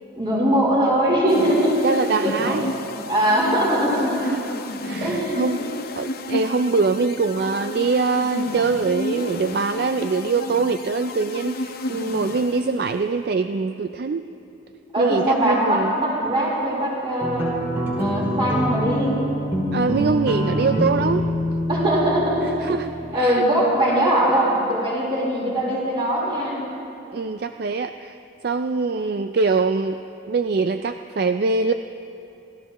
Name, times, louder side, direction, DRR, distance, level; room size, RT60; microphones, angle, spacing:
voice 1, 0.1-1.8 2.2-2.8 3.1-4.2 5.0-5.6 9.4-9.5 14.9-17.5 18.0-19.2 21.7-22.6 23.1-26.7, right 1 dB, 25° right, -6 dB, 4.0 m, -21 dB
sound 1, 1.3-13.1, left 2 dB, 50° left, 0.7 m, -32 dB
voice 2, 1.8-2.6 4.2-4.5 4.8-5.6 6.0-14.3 15.0-15.9 19.7-21.3 22.6-22.9 23.2-23.4 27.1-28.2 28.4-30.0 30.3-31.7, right 4 dB, 55° right, 8 dB, 0.4 m, -23 dB
sound 2, 17.2-23.1, equal, 10° right, 2.1 m, -25 dB
29.0 x 13.5 x 3.0 m, 2.9 s
head